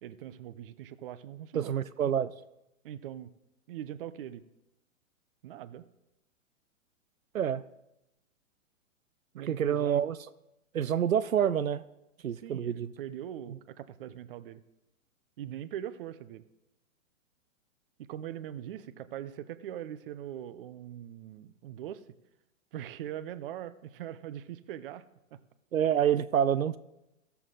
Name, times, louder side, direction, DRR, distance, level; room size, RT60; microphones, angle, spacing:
voice 1, 0.0-1.7 2.8-3.3 3.7-4.5 5.4-5.9 9.3-10.0 12.4-14.6 15.4-16.4 18.0-22.0 22.7-25.0 25.3-25.4, right 11 dB, 45° right, 13 dB, 0.6 m, -41 dB
voice 2, 1.5-2.3 7.3-7.6 9.4-10.2 10.7-11.8 12.2-12.9 25.7-26.8, right 9 dB, 80° right, 14 dB, 0.5 m, -27 dB
15.0 x 7.0 x 3.8 m, 0.91 s
figure-of-eight pair, 110°, 40 cm